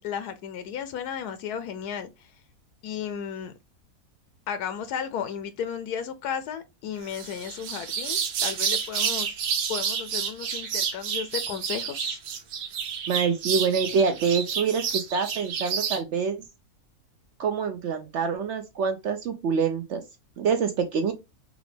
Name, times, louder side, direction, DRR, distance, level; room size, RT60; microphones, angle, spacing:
voice 1, 0.0-2.1 2.8-3.5 4.5-9.4 9.7-12.2, left 8 dB, 85° left, 1.1 m, -34 dB
sound 1, 7.1-16.0, right 7 dB, 85° right, 1.3 m, -29 dB
voice 2, 13.1-16.4 17.4-20.0 20.4-21.1, right 6 dB, 65° right, 0.7 m, -26 dB
4.9 x 2.4 x 3.3 m
omnidirectional pair, 1.6 m